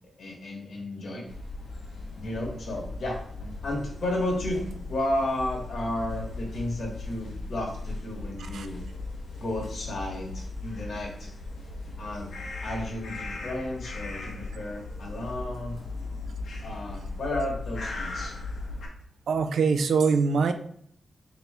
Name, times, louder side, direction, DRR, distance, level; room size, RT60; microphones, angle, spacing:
voice 1, 0.2-1.2 2.2-3.2 3.6-4.6 4.9-8.8 9.4-11.3 12.0-12.3 12.6-15.8 16.6-18.3, left 1 dB, 60° left, -1 dB, 1.3 m, -32 dB
sound 1, 1.3-18.9, left 2 dB, 85° left, 0.9 m, -38 dB
voice 2, 19.3-20.5, right 5 dB, 85° right, 8 dB, 0.3 m, -23 dB
3.9 x 3.0 x 3.3 m, 0.65 s
wide cardioid pair, 140°, 0 cm